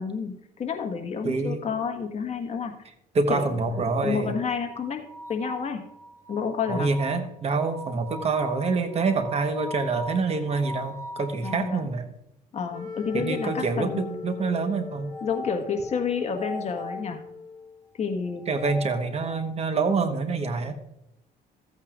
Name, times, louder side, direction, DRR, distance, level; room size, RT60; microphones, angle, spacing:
voice 1, 0.0-2.7 3.3-3.6 4.0-5.0 5.3-5.8 6.3-6.9 11.4-11.9 12.5-14.0 15.2-17.2 18.0-18.4, left 6 dB, 40° left, 5 dB, 1.5 m, -29 dB
voice 2, 1.2-1.7 3.1-4.3 6.7-12.1 13.1-15.1 18.5-20.7, right 4 dB, 40° right, 8 dB, 1.1 m, -26 dB
sound 1, 3.7-11.8 13.1-14.3 15.1-17.1 18.3-19.6, left 1 dB, 20° left, 1.4 m, -41 dB
Wind instrument woodwind instrument, 12.7-17.8, left 4 dB, 55° right, 2.6 m, -40 dB
15.0 x 8.8 x 2.4 m, 0.82 s
cardioid pair, 110°, 17 cm